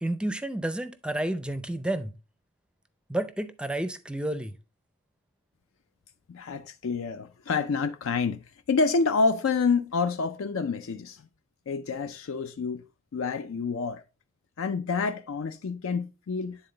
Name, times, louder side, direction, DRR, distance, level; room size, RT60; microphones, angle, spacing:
voice 1, 0.0-2.1 3.1-4.5, right 1 dB, 5° right, 0.5 m, -30 dB
voice 2, 6.3-11.2 11.7-12.8 13.1-14.0 14.6-16.6, left 4 dB, 65° left, 0.4 m, -28 dB
9.6 x 3.8 x 3.9 m
head